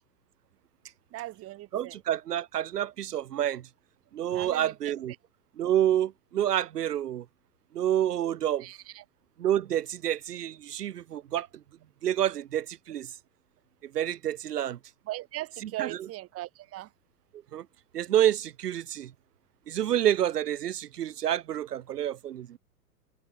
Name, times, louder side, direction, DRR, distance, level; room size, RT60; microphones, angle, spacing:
voice 1, 1.1-2.0 4.3-4.8 8.6-9.0 15.1-16.9, right 16 dB, 30° right, 3.6 m, -39 dB
voice 2, 1.7-3.6 4.1-5.1 5.6-7.2 7.7-8.7 9.4-11.5 12.0-13.1 13.9-14.8 15.6-15.9 17.5-17.6 17.9-19.1 19.7-22.6, right 11 dB, 80° right, 1.0 m, -28 dB
hypercardioid pair, 125°, 47 cm